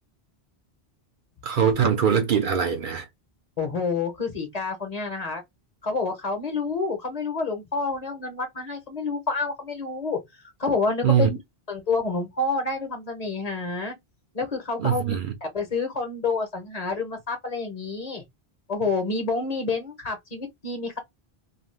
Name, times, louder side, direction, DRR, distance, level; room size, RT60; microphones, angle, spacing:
voice 1, 1.4-3.0 11.0-11.3 14.8-15.3, right 7 dB, 60° right, 0.7 m, -22 dB
voice 2, 3.6-5.4 5.8-10.2 10.6-11.4 11.7-13.9 14.3-15.1 15.4-18.2 18.7-21.0, left 4 dB, 45° left, 0.8 m, -28 dB
2.4 x 2.3 x 3.2 m
omnidirectional pair, 1.0 m